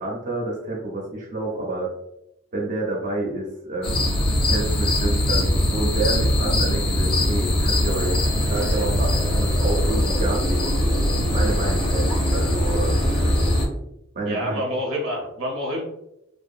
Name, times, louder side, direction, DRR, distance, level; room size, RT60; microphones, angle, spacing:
voice 1, 0.0-1.9 2.5-4.1 4.5-10.8 11.3-13.3 14.1-14.6, right 2 dB, 40° right, -3 dB, 0.6 m, -29 dB
sound 1, 3.8-13.7, left 1 dB, 25° left, 0.5 m, -21 dB
voice 2, 14.3-15.8, equal, 80° right, 0 dB, 0.8 m, -27 dB
2.6 x 2.1 x 2.4 m, 0.82 s
head